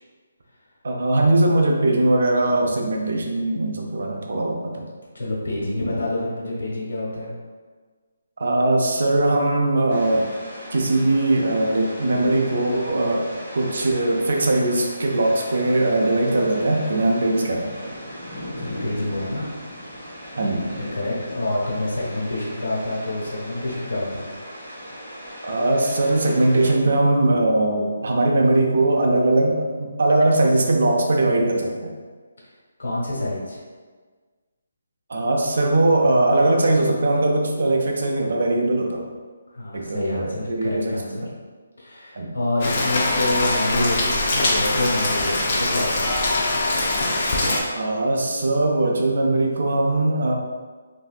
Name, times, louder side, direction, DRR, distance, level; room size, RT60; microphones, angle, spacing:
voice 1, 0.8-4.9 8.4-10.3 10.7-13.3 13.5-17.7 20.4-20.7 25.4-31.9 35.1-39.1 39.7-41.3 42.2-42.4 47.7-50.4, right 2 dB, 55° right, 1 dB, 0.5 m, -20 dB
voice 2, 5.1-7.3 18.6-19.6 20.5-20.6 20.9-24.3 32.8-33.6 39.5-41.2 41.8-46.1, left 1 dB, 80° left, -4 dB, 1.2 m, -27 dB
sound 1, 9.9-26.7, equal, ahead, 1.3 m, -38 dB
Rain, 42.6-47.6, left 2 dB, 30° left, 0.4 m, -22 dB
3.3 x 2.6 x 2.3 m, 1.4 s
hypercardioid pair, 175°, 0 cm